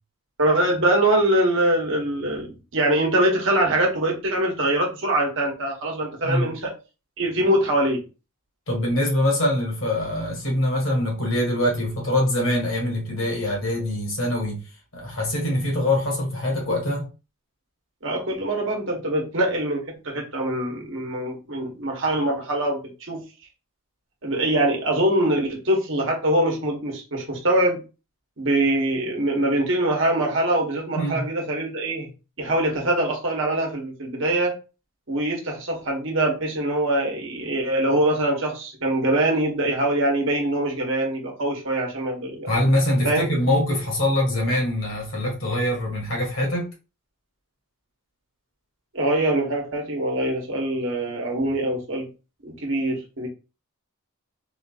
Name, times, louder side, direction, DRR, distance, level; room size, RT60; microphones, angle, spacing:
voice 1, 0.4-6.7 7.2-8.0 18.0-22.8 23.1-23.2 24.2-27.8 28.4-32.1 32.4-34.5 35.1-42.5 43.0-43.3 48.9-52.1 52.4-53.3, right 1 dB, 60° right, 0 dB, 1.1 m, -23 dB
voice 2, 8.7-14.6 14.9-17.1 30.9-31.3 42.5-46.7, left 1 dB, 65° left, -1 dB, 1.6 m, -23 dB
3.9 x 2.5 x 2.3 m, 0.31 s
head